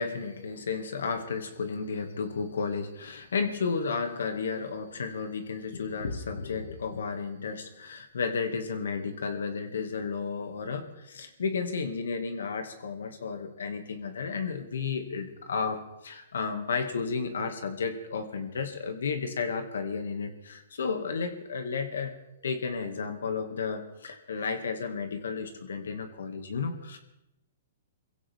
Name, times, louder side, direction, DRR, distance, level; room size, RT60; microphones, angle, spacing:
voice 1, 0.0-22.1 22.4-27.0, left 5 dB, 85° left, 6 dB, 2.2 m, -33 dB
23.5 x 16.0 x 3.7 m, 0.88 s
hypercardioid pair, 145°, 0 cm